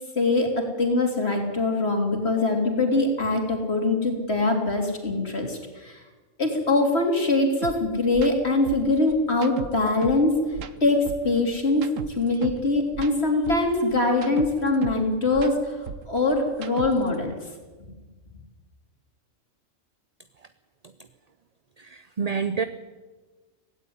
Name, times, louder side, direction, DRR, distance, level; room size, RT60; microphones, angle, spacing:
voice 1, 0.2-6.0 6.4-10.4 10.8-11.9 12.2-15.8 16.1-17.3, left 2 dB, 50° left, 3 dB, 3.6 m, -23 dB
sound 1, 7.6-7.8 8.1-8.3 8.7-10.2 10.5-12.6 12.9-15.0 15.3-17.2, right 7 dB, 75° right, 1.4 m, -36 dB
voice 2, 21.8-22.6, right 5 dB, 40° right, 11 dB, 0.6 m, -28 dB
17.0 x 16.5 x 9.4 m, 1.3 s
omnidirectional pair, 1.3 m